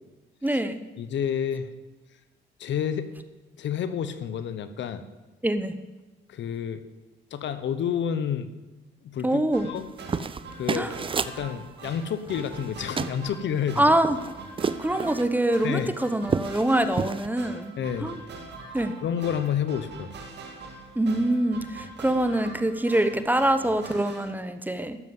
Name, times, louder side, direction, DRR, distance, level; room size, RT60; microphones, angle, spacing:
voice 1, 0.4-0.8 5.4-5.7 9.2-9.7 10.7-10.9 13.8-14.2 14.8-17.7 18.0-18.2 18.7-18.9 21.0-25.0, right 1 dB, 10° right, 10 dB, 0.9 m, -24 dB
voice 2, 1.0-1.7 2.6-3.1 3.6-5.0 6.3-6.8 7.3-8.5 9.0-9.9 10.6-10.9 11.3-13.9 15.6-15.9 17.8-18.1 19.0-20.1, left 8 dB, 65° left, 12 dB, 1.0 m, -29 dB
sound 1, 9.5-24.3, right 3 dB, 60° right, 2.2 m, -43 dB
sound 2, 9.8-11.4 12.3-12.7 13.0-13.2 13.6-15.3 15.8-15.9 16.2-16.7 16.9-17.3, right 5 dB, 25° right, 0.5 m, -30 dB
12.0 x 7.5 x 7.9 m, 1.1 s
cardioid pair, 90°, 20 cm